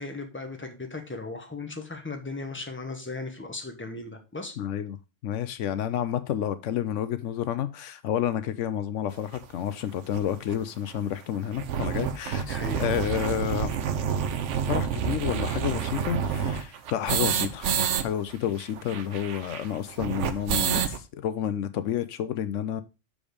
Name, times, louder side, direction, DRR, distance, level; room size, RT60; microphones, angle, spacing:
voice 1, 0.0-4.6 12.4-12.8, left 3 dB, 10° left, 1.2 m, -37 dB
voice 2, 4.6-5.0 5.2-13.8 14.7-22.8, left 10 dB, 80° left, 0.9 m, -30 dB
sound 1, 9.3-9.4 10.1-10.2 10.5-10.6 10.9-11.0 11.3-18.0 18.3-18.4 18.6-21.0, right 8 dB, 70° right, 1.1 m, -28 dB
7.1 x 5.0 x 4.9 m
omnidirectional pair, 1.3 m